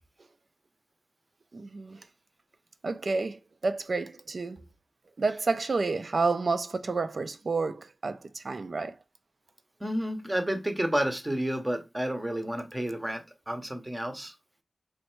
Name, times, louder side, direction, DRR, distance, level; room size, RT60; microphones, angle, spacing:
voice 1, 1.5-2.0 2.8-4.6 5.2-9.0, right 3 dB, 55° right, 0.4 m, -30 dB
voice 2, 9.8-14.3, right 1 dB, 15° right, 0.7 m, -30 dB
3.2 x 2.6 x 4.4 m
wide cardioid pair, 105°, 0 cm